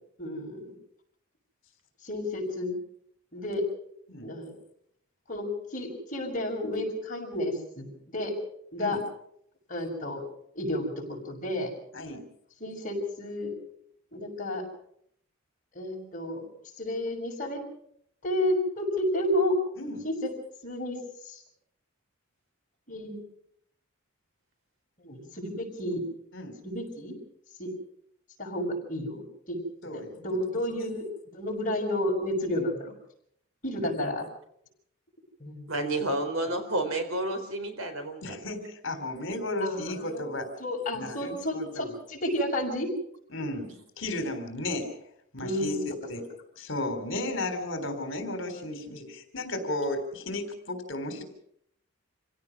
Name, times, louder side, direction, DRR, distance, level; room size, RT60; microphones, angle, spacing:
voice 1, 0.2-0.7 2.0-2.8 3.3-3.6 4.2-4.5 5.3-8.3 8.7-9.0 9.7-10.2 10.5-11.7 12.6-13.5 14.1-14.6 15.7-16.4 16.8-17.6 18.2-19.6 20.0-20.3 20.6-21.0 21.2-21.4 22.9-23.2 25.0-26.0 26.6-27.2 27.6-27.7 28.4-29.6 29.9-31.0 31.3-32.9 33.6-34.3 35.4-35.7 39.6-42.9 45.4-45.8, left 1 dB, 35° left, -1 dB, 6.4 m, -31 dB
voice 2, 29.8-30.1 30.8-31.0 33.8-34.0 38.2-40.5 40.9-41.9 43.3-44.9 45.3-45.8 46.1-46.2 46.6-51.2, left 1 dB, 55° left, 7 dB, 3.7 m, -34 dB
voice 3, 35.7-38.5 43.5-43.7, right 1 dB, 70° right, 6 dB, 4.3 m, -30 dB
27.0 x 17.0 x 6.1 m, 0.71 s
head